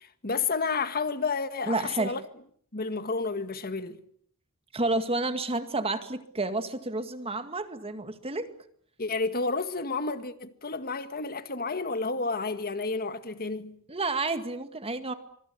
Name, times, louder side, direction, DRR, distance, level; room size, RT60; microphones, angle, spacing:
voice 1, 0.0-2.2 2.7-4.0 9.0-13.8, left 4 dB, 45° left, 1.9 m, -31 dB
voice 2, 1.7-2.2 4.7-8.5 13.9-15.1, right 2 dB, 25° right, 2.1 m, -30 dB
25.0 x 24.0 x 8.2 m
head